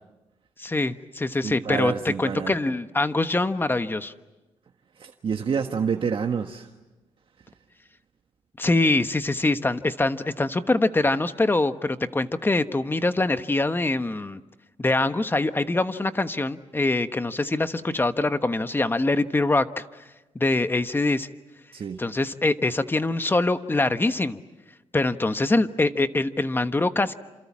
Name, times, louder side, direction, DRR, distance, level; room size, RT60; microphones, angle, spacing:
voice 1, 0.6-4.1 8.6-14.4 14.8-19.8 20.3-21.3 22.0-24.4 24.9-27.1, left 2 dB, 20° left, 10 dB, 1.2 m, -24 dB
voice 2, 1.4-2.5 5.0-6.7 21.7-22.0, right 6 dB, 55° right, 5 dB, 1.5 m, -28 dB
29.0 x 27.0 x 7.4 m, 1.1 s
cardioid pair, 90°, 11 cm